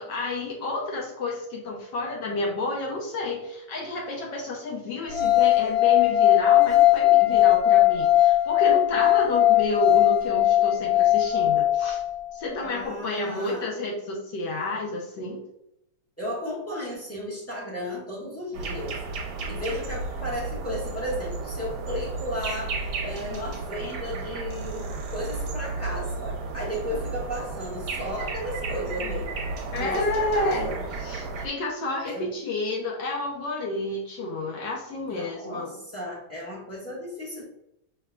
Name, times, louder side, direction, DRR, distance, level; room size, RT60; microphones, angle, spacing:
voice 1, 0.0-12.0 12.3-15.4 29.7-30.7 31.0-35.8, left 2 dB, 70° left, -1 dB, 1.1 m, -30 dB
sound 1, 5.1-12.2, left 14 dB, 85° left, 1.6 m, -19 dB
voice 2, 12.6-13.7 16.2-19.0 19.4-29.4 29.8-30.8 32.0-32.4 35.1-37.4, left 1 dB, 10° left, -7 dB, 0.9 m, -34 dB
sound 2, 18.5-31.5, right 3 dB, 65° right, 1.1 m, -33 dB
5.7 x 3.3 x 2.3 m, 0.81 s
omnidirectional pair, 2.4 m